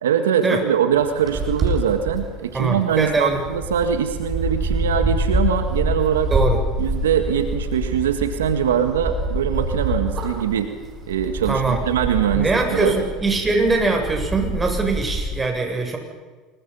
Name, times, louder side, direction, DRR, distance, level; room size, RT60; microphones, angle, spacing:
voice 1, 0.0-6.3 6.8-10.7 11.1-13.0, right 8 dB, 90° right, 7 dB, 1.8 m, -22 dB
sound 1, 0.9-15.3, right 1 dB, 35° right, 7.9 m, -26 dB
voice 2, 2.5-3.5 6.3-6.6 11.5-11.8 12.3-16.0, right 3 dB, 20° right, 3 dB, 7.6 m, -22 dB
27.5 x 23.0 x 5.7 m, 1.4 s
hypercardioid pair, 85°, 0 cm